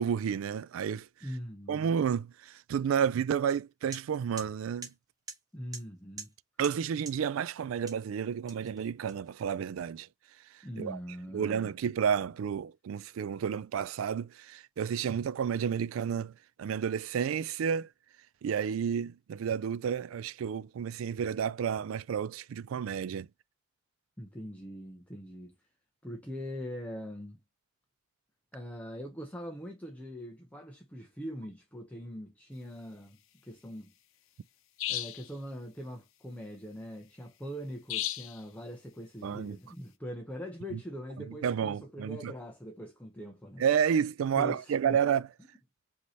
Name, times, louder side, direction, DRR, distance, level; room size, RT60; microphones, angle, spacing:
voice 1, 0.0-1.1 1.7-4.9 6.6-10.1 10.8-11.0 11.3-16.3 16.6-17.9 18.4-23.3 39.2-39.6 40.7-40.8 41.4-42.3 43.6-45.3, right 7 dB, 85° right, 0.3 m, -31 dB
voice 2, 1.2-1.9 5.5-6.3 10.6-11.7 24.2-25.5 26.0-27.4 28.5-33.2 33.4-33.9 34.9-43.6 44.3-45.0, equal, 5° left, 0.7 m, -42 dB
sound 1, 3.5-3.6 3.9-4.0 4.4-4.5 4.8-4.9 5.3-5.4 5.7-5.8 6.2-6.3 6.6-6.7 7.1-7.2 7.9-8.0 8.5-9.5, right 4 dB, 20° right, 1.2 m, -43 dB
sound 2, 34.8-35.3 37.9-38.4, left 12 dB, 80° left, 0.6 m, -34 dB
5.2 x 2.8 x 3.1 m
head